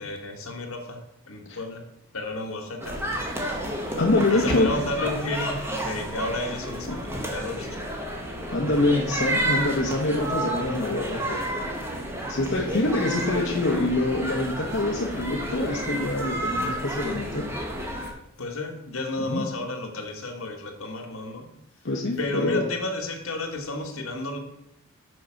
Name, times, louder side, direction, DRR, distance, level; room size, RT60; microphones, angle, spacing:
voice 1, 0.0-1.8 2.1-3.2 4.3-7.8 10.2-10.3 12.6-12.7 18.4-21.5 22.2-24.4, left 2 dB, 75° left, 3 dB, 1.4 m, -32 dB
sound 1, 2.8-18.1, right 1 dB, 10° right, 1.2 m, -31 dB
voice 2, 4.0-4.7 6.9-7.0 8.5-11.4 12.3-17.4 19.2-19.4 21.8-22.6, left 2 dB, 60° left, -2 dB, 1.0 m, -25 dB
6.5 x 5.7 x 5.8 m, 0.81 s
head